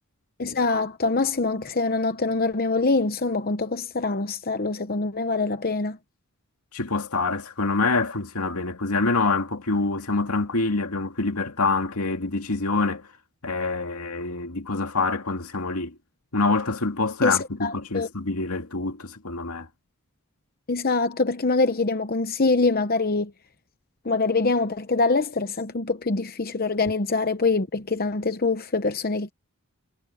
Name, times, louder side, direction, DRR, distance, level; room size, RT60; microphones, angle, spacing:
voice 1, 0.4-6.0 17.2-18.1 20.7-23.3 24.0-29.3, left 3 dB, 45° left, 0.9 m, -24 dB
voice 2, 6.7-13.1 13.4-15.9 16.3-19.7, left 3 dB, 85° left, 2.3 m, -26 dB
head